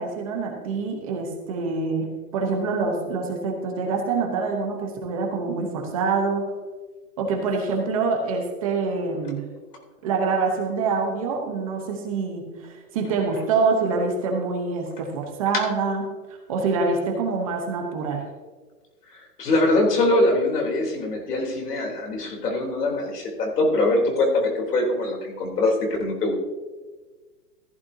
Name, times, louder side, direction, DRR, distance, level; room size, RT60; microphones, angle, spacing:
voice 1, 0.0-6.5 7.2-9.5 10.0-16.2 16.5-18.2, right 4 dB, 20° right, 2 dB, 0.9 m, -25 dB
voice 2, 19.1-25.8 26.0-26.4, left 2 dB, 75° left, 0 dB, 3.5 m, -23 dB
14.5 x 12.0 x 2.8 m, 1.3 s
hypercardioid pair, 170°, 47 cm